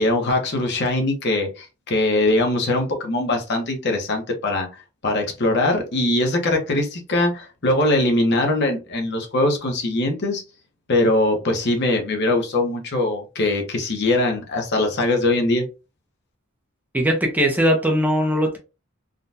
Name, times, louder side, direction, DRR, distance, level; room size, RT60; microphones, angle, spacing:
voice 1, 0.0-4.7 5.0-10.4 10.9-15.6, left 2 dB, 55° left, 0.9 m, -21 dB
voice 2, 16.9-18.6, equal, 10° right, 0.6 m, -20 dB
3.7 x 2.2 x 2.6 m
head